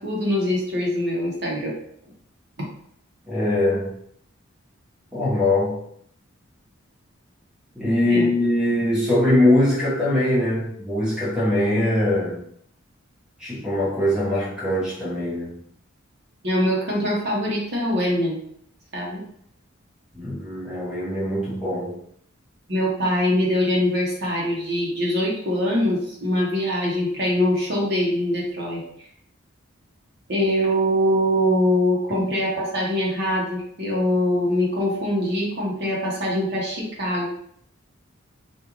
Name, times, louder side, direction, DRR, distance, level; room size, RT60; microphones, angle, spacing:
voice 1, 0.0-1.7 8.0-8.3 16.4-18.4 18.9-19.2 22.7-28.8 30.3-37.3, equal, 50° right, -4 dB, 0.9 m, -23 dB
voice 2, 3.3-4.0 5.1-5.8 7.7-12.4 13.4-15.6 20.1-22.0, left 1 dB, 5° right, -8 dB, 1.0 m, -22 dB
3.7 x 2.4 x 3.0 m, 0.69 s
head